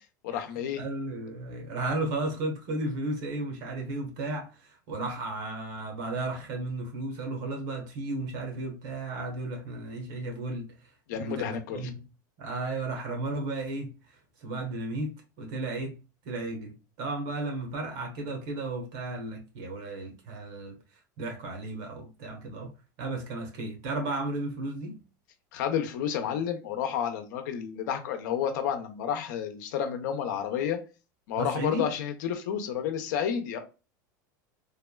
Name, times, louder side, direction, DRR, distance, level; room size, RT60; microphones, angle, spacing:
voice 1, 0.2-0.8 11.1-11.8 25.5-30.8 31.3-33.6, left 8 dB, 75° left, 0.6 m, -30 dB
voice 2, 0.8-12.0 12.4-15.9 16.2-20.8 21.2-22.7 23.0-25.0 31.4-31.8, right 2 dB, 70° right, 1.2 m, -34 dB
3.4 x 2.2 x 2.2 m
supercardioid pair, 115°, 10 cm